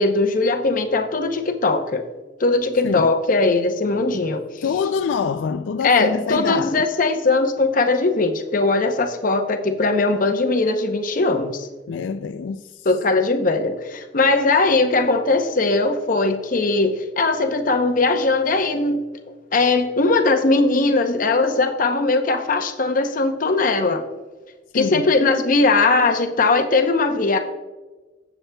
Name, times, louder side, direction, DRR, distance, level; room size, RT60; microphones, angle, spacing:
voice 1, 0.0-2.0 2.4-4.4 5.8-11.7 12.8-19.0 19.5-24.0 24.7-27.4, left 3 dB, 45° left, 0.7 m, -19 dB
voice 2, 4.6-6.9 11.9-12.9 24.7-25.1, left 6 dB, 80° left, 0.3 m, -25 dB
16.0 x 7.1 x 2.3 m
head